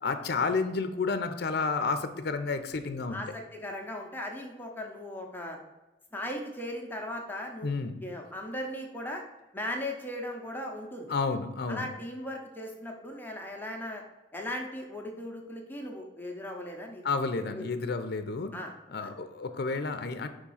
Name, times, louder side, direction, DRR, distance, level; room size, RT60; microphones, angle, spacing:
voice 1, 0.0-3.2 7.6-8.0 11.1-11.9 17.0-18.5 18.9-20.3, left 4 dB, 65° left, 9 dB, 0.5 m, -31 dB
voice 2, 3.1-5.6 6.1-7.7 8.0-9.2 9.5-11.1 11.7-14.0 14.3-17.0 17.5-17.7 18.5-18.7 19.0-19.1 19.5-19.6, left 1 dB, 10° left, 1 dB, 0.8 m, -38 dB
5.1 x 3.7 x 5.5 m, 1.1 s
head